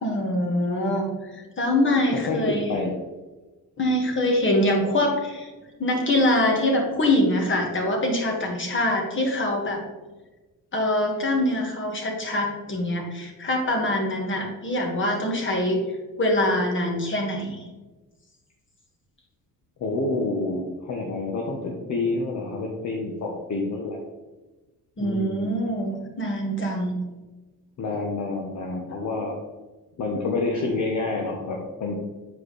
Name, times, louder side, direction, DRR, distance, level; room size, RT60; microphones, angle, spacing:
voice 1, 0.0-2.7 3.8-5.5 5.8-9.8 10.7-15.8 16.2-17.6 25.0-27.0, left 1 dB, 35° left, 1 dB, 1.7 m, -24 dB
voice 2, 2.1-2.9 19.8-24.0 25.0-25.5 27.8-29.4 30.0-31.9, left 3 dB, 55° left, 0 dB, 1.0 m, -28 dB
8.2 x 4.7 x 3.2 m, 1.2 s
cardioid pair, 105°, 36 cm